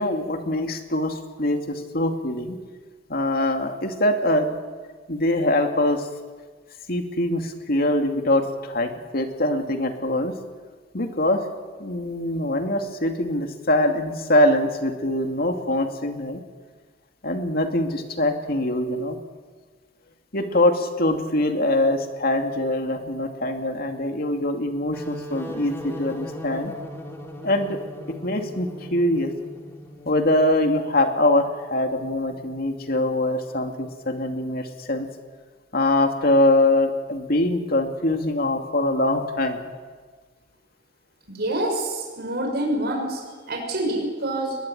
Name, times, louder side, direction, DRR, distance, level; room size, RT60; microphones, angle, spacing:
voice 1, 0.0-2.6 3.1-4.6 5.1-6.1 6.9-10.4 10.9-11.4 11.8-16.4 17.2-19.2 20.3-26.7 27.4-27.8 28.1-29.3 30.0-35.1 35.7-39.7, left 1 dB, 55° left, 5 dB, 2.5 m, -23 dB
sound 1, 24.9-30.4, equal, 15° left, 3.1 m, -38 dB
voice 2, 41.3-43.2 43.5-44.6, right 1 dB, 60° right, 1 dB, 6.1 m, -26 dB
21.5 x 21.0 x 9.2 m, 1.5 s
head